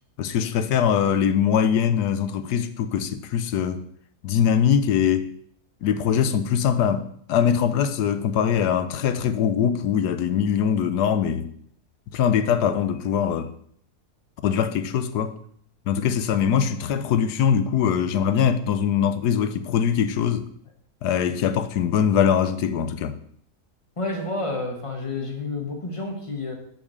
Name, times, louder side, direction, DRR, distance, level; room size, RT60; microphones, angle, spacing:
voice 1, 0.2-3.8 4.2-5.3 5.8-11.5 12.1-13.5 14.4-15.3 15.9-20.5 21.0-23.2, left 8 dB, 85° left, 1.3 m, -22 dB
voice 2, 24.0-26.5, left 2 dB, 20° left, 1.4 m, -29 dB
6.4 x 5.9 x 6.5 m
omnidirectional pair, 1.7 m